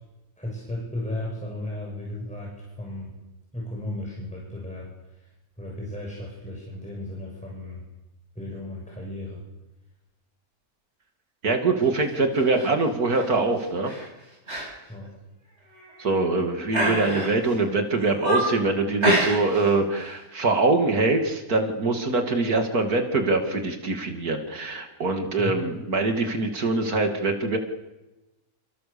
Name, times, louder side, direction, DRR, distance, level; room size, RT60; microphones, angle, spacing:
voice 1, 0.4-3.1 3.5-5.3 5.6-7.8 8.4-9.4 14.9-15.1 25.4-25.6, left 1 dB, 5° left, -3 dB, 7.1 m, -35 dB
voice 2, 11.4-13.9 16.0-27.6, right 3 dB, 80° right, 4 dB, 2.9 m, -24 dB
sound 1, 12.3-12.7 13.1-13.4 13.8-14.1 14.5-14.7 15.0-15.1 15.7-16.2 16.7-17.5 17.9-18.6 19.0-19.7 20.0-20.2, right 1 dB, 45° right, 8.6 m, -26 dB
29.5 x 27.5 x 7.0 m, 1.0 s
omnidirectional pair, 1.6 m